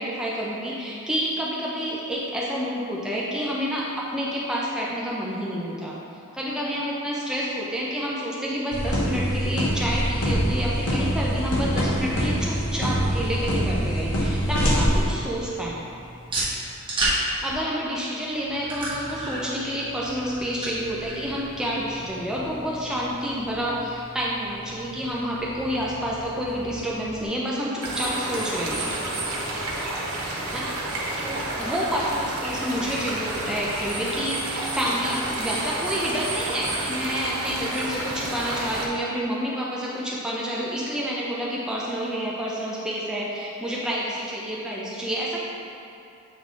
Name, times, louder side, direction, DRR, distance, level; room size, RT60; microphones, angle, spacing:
voice 1, 0.0-6.0 6.3-15.8 17.4-28.9 30.5-30.9 31.2-45.4, equal, 5° right, -6 dB, 0.6 m, -29 dB
sound 1, 8.7-15.0, equal, 75° left, 1.1 m, -24 dB
sound 2, 13.0-27.2, right 1 dB, 20° right, 1.2 m, -35 dB
sound 3, 27.8-38.9, right 2 dB, 80° right, 1.0 m, -30 dB
7.3 x 3.9 x 3.7 m, 2.7 s
head